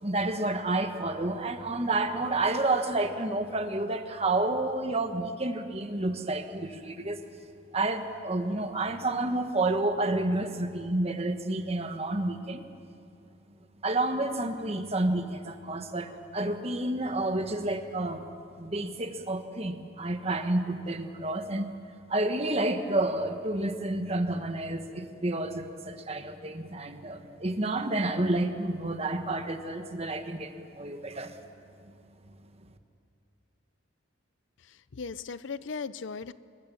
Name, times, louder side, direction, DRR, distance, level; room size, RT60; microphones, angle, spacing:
voice 1, 0.0-7.2 7.7-12.6 13.8-18.2 18.6-21.8 22.1-31.3 31.8-31.9, right 2 dB, 30° right, 7 dB, 1.4 m, -30 dB
voice 2, 34.6-36.3, left 5 dB, 65° left, 15 dB, 0.6 m, -38 dB
26.5 x 21.5 x 7.0 m, 2.5 s
head